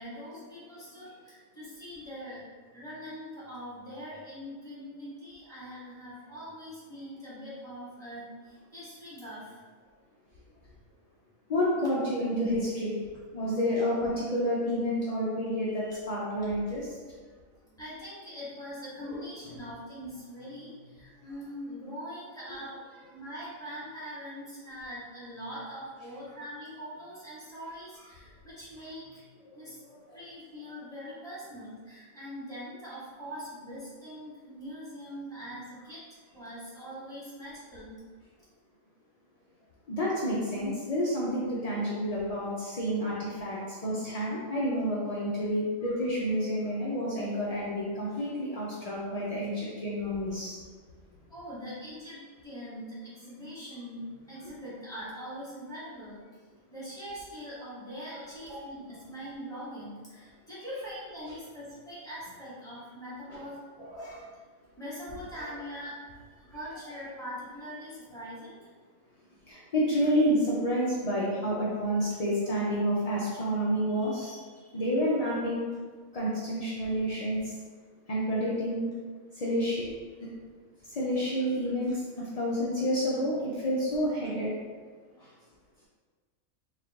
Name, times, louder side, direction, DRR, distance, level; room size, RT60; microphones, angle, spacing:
voice 1, 0.0-2.4 2.7-9.6 13.4-13.6 17.6-22.7 23.1-29.3 29.5-29.8 30.1-37.9 50.1-50.2 50.9-56.2 56.7-64.3 64.8-68.6 85.0-85.1, equal, 5° left, -11 dB, 1.3 m, -42 dB
voice 2, 11.5-13.0 13.3-16.9 30.1-30.2 39.9-50.5 63.3-63.4 69.5-74.4 74.7-75.7 76.1-77.4 78.1-78.9 79.4-79.8 80.2-80.3 80.9-84.6 85.2-85.3, equal, 60° left, -6 dB, 0.4 m, -29 dB
4.3 x 2.4 x 3.5 m, 1.5 s
omnidirectional pair, 1.5 m